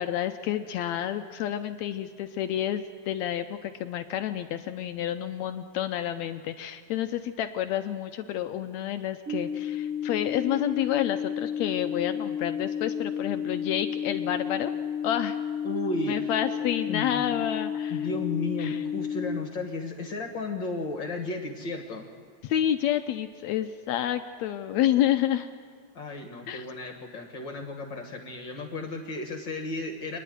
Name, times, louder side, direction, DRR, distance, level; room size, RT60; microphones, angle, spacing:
voice 1, 0.0-14.7 15.0-15.4 16.1-18.0 18.6-18.8 22.4-25.5 26.5-26.6, left 11 dB, 75° left, 9 dB, 1.7 m, -29 dB
sound 1, 9.3-19.3, left 8 dB, 85° right, 6.1 m, -32 dB
voice 2, 15.6-16.3 16.9-17.3 17.9-22.1 25.9-30.2, left 3 dB, 45° left, 4 dB, 1.7 m, -34 dB
27.5 x 10.5 x 9.3 m, 2.1 s
omnidirectional pair, 3.6 m